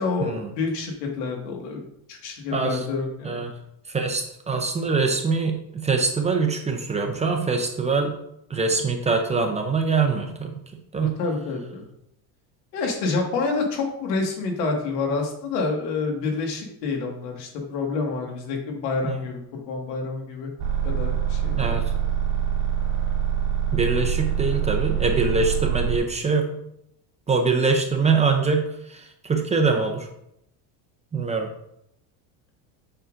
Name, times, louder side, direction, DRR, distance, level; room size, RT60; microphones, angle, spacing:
voice 1, 0.0-1.8 2.1-3.4 11.0-11.8 12.7-20.5 20.8-21.8, left 4 dB, 90° left, 2 dB, 1.8 m, -28 dB
voice 2, 2.5-2.8 3.2-3.5 3.9-8.2 8.5-10.5 10.9-11.1 19.0-19.2 21.6-21.9 23.7-26.5 27.3-30.1 31.1-31.5, right 4 dB, 15° right, 3 dB, 0.5 m, -23 dB
sound 1, 20.6-26.0, right 9 dB, 55° right, 2.2 m, -25 dB
6.7 x 5.7 x 2.5 m, 0.76 s
supercardioid pair, 130°, 47 cm